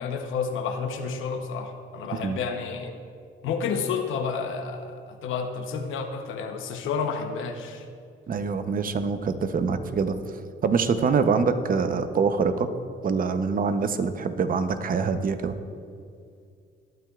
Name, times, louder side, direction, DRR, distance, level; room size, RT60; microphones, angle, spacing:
voice 1, 0.0-2.9 3.4-7.9, left 5 dB, 85° left, 5 dB, 0.9 m, -30 dB
voice 2, 8.3-10.2 10.6-12.7 13.0-15.5, right 5 dB, 45° right, 10 dB, 0.8 m, -25 dB
20.0 x 9.2 x 2.4 m, 2.3 s
cardioid pair, 90°, 20 cm